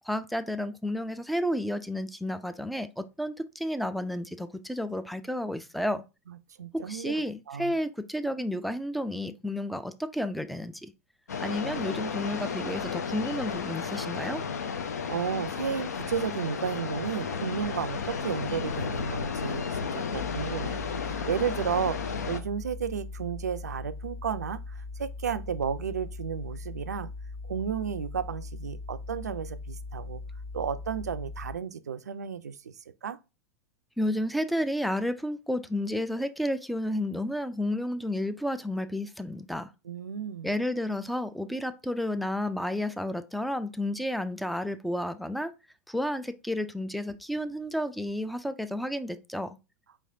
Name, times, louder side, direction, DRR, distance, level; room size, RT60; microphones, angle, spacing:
voice 1, 0.0-6.0 6.9-10.9 11.4-14.4 34.0-39.7 40.4-45.5 45.9-49.6, left 1 dB, ahead, 0.3 m, -31 dB
voice 2, 6.3-7.2 7.5-7.8 15.1-27.1 27.4-30.2 30.5-32.7 33.0-33.2 39.9-40.5, right 7 dB, 75° right, 0.4 m, -33 dB
sound 1, 11.3-22.4, left 6 dB, 70° left, 0.5 m, -33 dB
sound 2, 20.1-31.5, left 3 dB, 90° left, 2.1 m, -40 dB
5.0 x 3.2 x 2.6 m
figure-of-eight pair, 90°, 9 cm